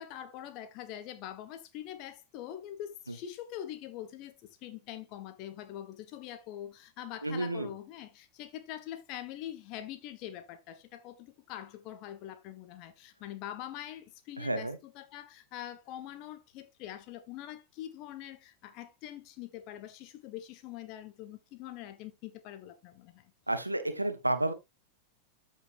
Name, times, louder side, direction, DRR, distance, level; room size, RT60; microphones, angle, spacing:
voice 1, 0.0-23.2, left 11 dB, 40° left, 1.3 m, -44 dB
voice 2, 7.2-7.7 14.4-14.8 23.5-24.5, right 1 dB, 85° right, 1.2 m, -31 dB
14.0 x 5.2 x 2.5 m
figure-of-eight pair, 90°, 0 cm